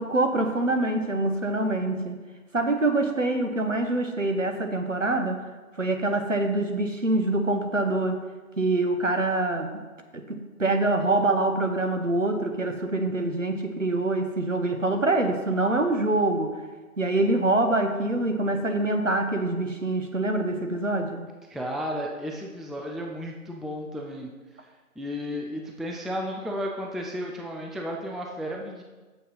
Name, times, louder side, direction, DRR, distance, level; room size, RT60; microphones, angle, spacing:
voice 1, 0.0-2.2 2.5-5.4 5.8-8.2 8.6-9.8 10.1-16.5 17.0-21.2, right 2 dB, 55° right, 5 dB, 1.1 m, -25 dB
voice 2, 21.5-24.3 24.5-24.7 25.0-28.8, equal, ahead, 0 dB, 0.4 m, -33 dB
7.0 x 6.2 x 5.6 m, 1.3 s
figure-of-eight pair, 175°, 44 cm